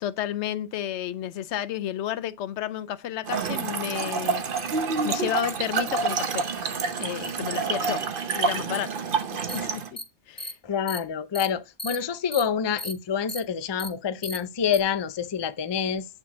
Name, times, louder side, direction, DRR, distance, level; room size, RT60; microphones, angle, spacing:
voice 1, 0.0-4.4 4.7-6.5 7.0-8.0 8.3-8.9 9.5-9.8 10.3-10.5, left 11 dB, 80° left, 0.9 m, -31 dB
Trickle dribble / Fill (with liquid), 3.2-9.9, right 5 dB, 50° right, 1.0 m, -28 dB
sound 1, 9.5-9.6 10.0-10.1 10.4-10.5 10.9-11.0 11.3-11.5 11.8-12.0 12.3-12.4 12.8-12.9 13.3-13.4 13.8-13.9 14.2-14.4 14.7-14.8, left 1 dB, 15° left, 0.9 m, -34 dB
voice 2, 10.6-16.1, left 7 dB, 40° left, 0.3 m, -27 dB
9.0 x 3.7 x 5.8 m
omnidirectional pair, 1.2 m